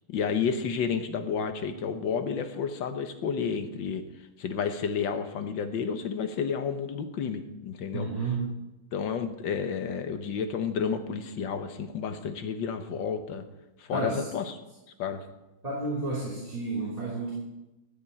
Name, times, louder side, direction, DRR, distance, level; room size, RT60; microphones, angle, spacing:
voice 1, 0.1-4.0 4.4-8.1 8.9-13.4 13.8-14.5 15.0-15.2, left 6 dB, 65° left, 8 dB, 1.7 m, -31 dB
voice 2, 7.9-8.6 13.9-14.3 15.6-17.3, right 3 dB, 15° right, -6 dB, 3.0 m, -31 dB
14.5 x 6.5 x 8.4 m, 1.0 s
omnidirectional pair, 2.3 m